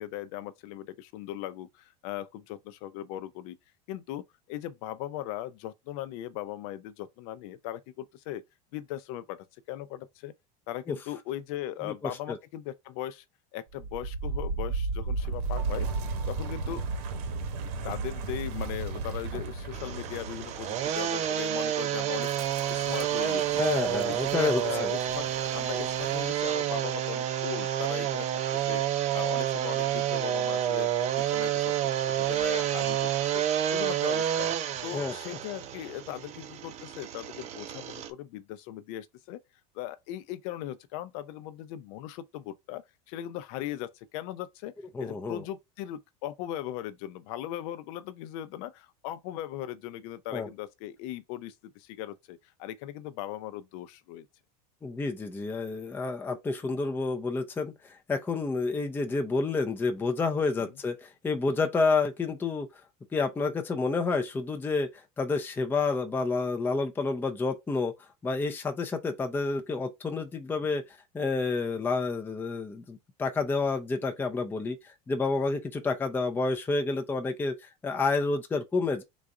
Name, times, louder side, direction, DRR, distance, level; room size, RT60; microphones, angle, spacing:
voice 1, 0.0-3.6 3.9-8.4 8.7-10.3 10.7-13.2 13.5-15.9 16.3-16.8 17.8-22.3 22.7-23.6 23.9-28.4 28.7-28.8 29.1-34.5 34.8-39.4 39.7-44.7 45.0-54.3, left 12 dB, 60° left, 0.7 m, -39 dB
Wind, 13.7-26.7, right 4 dB, 65° right, 1.2 m, -35 dB
sound 1, 19.7-38.1, right 11 dB, 35° right, 0.6 m, -29 dB
voice 2, 23.6-24.9 34.9-35.1 44.9-45.4 50.3-50.5 54.8-62.7 63.1-64.9 65.2-67.9 68.2-70.8 71.1-79.0, left 3 dB, 10° left, 0.5 m, -29 dB
4.0 x 2.5 x 4.7 m
supercardioid pair, 150°, 20 cm